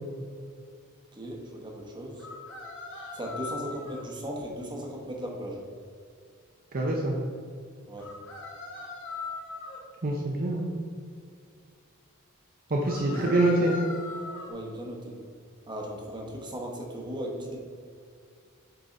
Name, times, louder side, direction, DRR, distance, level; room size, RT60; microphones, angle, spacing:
voice 1, 1.1-2.3 3.1-5.6 7.9-8.1 13.0-13.4 14.5-15.2 15.7-17.6, equal, 20° right, 0 dB, 1.1 m, -37 dB
sound 1, 2.2-4.0 8.0-9.8 12.9-14.5, left 3 dB, 60° left, 1.5 m, -39 dB
voice 2, 6.7-7.2 10.0-10.7 12.7-13.7, right 2 dB, 40° right, -1 dB, 0.7 m, -25 dB
8.8 x 3.9 x 4.0 m, 2.2 s
head